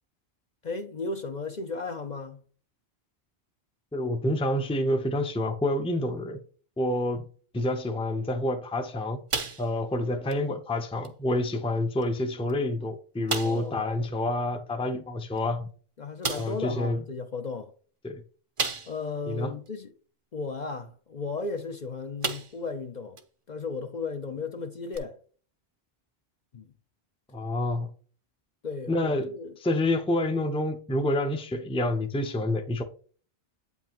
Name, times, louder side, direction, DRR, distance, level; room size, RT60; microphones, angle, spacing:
voice 1, 0.6-2.4 13.4-14.0 16.0-17.7 18.9-19.9 20.3-23.2 23.5-25.2 26.5-26.7 28.6-29.6, left 4 dB, 50° left, 0.7 m, -35 dB
voice 2, 3.9-6.4 6.8-7.3 7.5-9.2 9.6-15.7 16.4-17.0 18.0-18.2 19.3-19.6 27.3-27.9 28.9-29.3 29.6-32.8, left 1 dB, 5° left, 0.6 m, -28 dB
sound 1, 9.3-10.0 10.3-10.5 11.0-11.1 12.0-12.1 12.5-12.6 13.3-13.7 15.4-15.5 16.2-16.6 18.6-19.2 19.7-19.8 21.6-21.8 22.2-22.7 23.2-23.3 24.9-25.0, right 4 dB, 35° right, 0.7 m, -32 dB
8.4 x 5.4 x 3.0 m
omnidirectional pair, 1.1 m